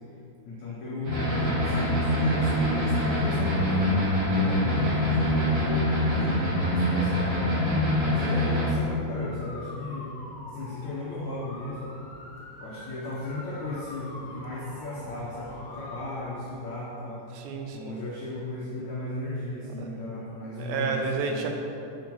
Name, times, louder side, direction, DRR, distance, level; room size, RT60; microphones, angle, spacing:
voice 1, 0.4-5.9 6.2-6.3 6.5-7.4 8.0-10.1 10.5-11.9 12.6-17.3 17.7-21.4, left 2 dB, 90° left, -5 dB, 1.6 m, -36 dB
sound 1, 1.0-8.7, left 1 dB, 30° right, 1.4 m, -24 dB
sound 2, 9.1-16.0, left 2 dB, 65° left, 3.3 m, -45 dB
voice 2, 17.3-18.0 19.8-19.9 20.6-21.5, right 5 dB, 80° right, 3 dB, 3.0 m, -30 dB
7.5 x 6.9 x 5.5 m, 2.9 s
omnidirectional pair, 5.0 m